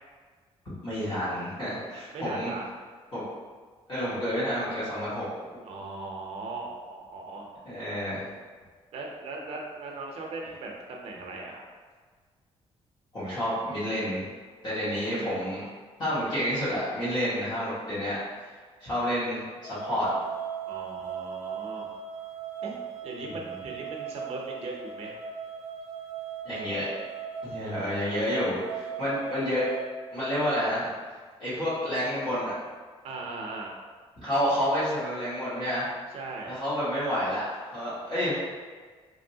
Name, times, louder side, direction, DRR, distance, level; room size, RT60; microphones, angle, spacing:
voice 1, 0.8-2.5 3.1-3.2 3.9-5.3 7.6-8.2 13.1-14.3 14.6-15.6 16.0-18.1 18.8-19.4 19.7-20.1 23.2-23.3 26.4-26.9 27.4-29.7 30.1-30.9 31.4-32.5 34.2-35.9 36.5-37.4 37.7-38.3, equal, 40° left, -13 dB, 1.2 m, -29 dB
voice 2, 2.1-2.7 5.6-7.5 8.9-11.6 14.9-15.4 20.6-21.9 22.6-22.8 23.0-25.2 27.6-28.3 33.0-33.7 36.1-36.6, right 3 dB, 65° right, 0 dB, 0.6 m, -39 dB
sound 1, 19.6-29.9, right 7 dB, 25° left, 0.9 m, -38 dB
3.1 x 2.7 x 2.7 m, 1.5 s
cardioid pair, 165°, 11 cm